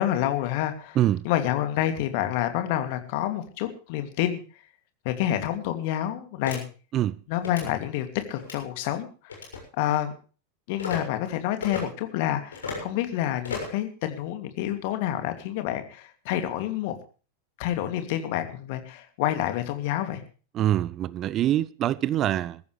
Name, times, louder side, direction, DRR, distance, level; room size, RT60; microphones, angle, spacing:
voice 1, 0.0-1.0 1.2-4.4 5.0-6.6 7.3-9.1 9.8-10.1 10.7-17.0 17.6-20.2, left 12 dB, 50° left, 2.6 m, -28 dB
sound 1, 6.4-6.6 7.4-7.7 8.4-8.6 9.3-9.6 10.8-11.0 11.6-11.8 12.5-12.9 13.4-13.8, left 5 dB, 70° left, 6.9 m, -34 dB
voice 2, 20.5-22.6, right 12 dB, 30° right, 0.6 m, -24 dB
22.0 x 14.0 x 3.3 m
figure-of-eight pair, 90°, 0 cm